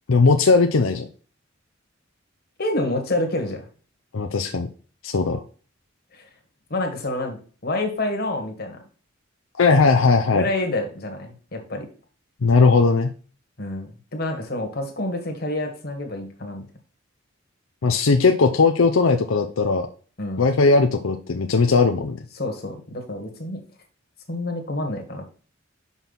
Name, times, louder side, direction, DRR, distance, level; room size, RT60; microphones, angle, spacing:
voice 1, 0.1-1.0 4.1-4.7 5.0-5.4 9.6-10.4 12.4-13.1 17.8-19.9 20.4-22.2, left 4 dB, 85° left, 5 dB, 0.6 m, -18 dB
voice 2, 2.6-3.6 6.1-6.2 6.7-7.4 7.6-8.8 10.3-11.9 13.6-16.6 20.2-20.4 22.3-23.6 24.3-25.4, left 2 dB, 55° left, 4 dB, 1.7 m, -28 dB
6.0 x 5.5 x 4.1 m, 0.40 s
head